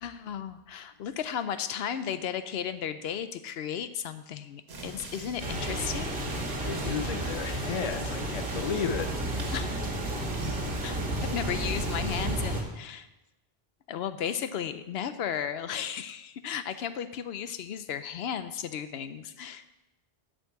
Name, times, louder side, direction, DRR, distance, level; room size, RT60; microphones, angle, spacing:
voice 1, 0.0-6.2 9.5-9.7 10.8-13.1 13.9-19.6, left 8 dB, 80° left, 12 dB, 0.8 m, -34 dB
sound 1, 4.7-12.3, right 2 dB, 85° right, 1.6 m, -43 dB
sound 2, 5.4-12.6, right 1 dB, 60° right, 1.7 m, -32 dB
voice 2, 6.6-9.3, left 6 dB, 45° left, 9 dB, 0.6 m, -33 dB
8.1 x 5.3 x 7.7 m, 0.98 s
omnidirectional pair, 1.0 m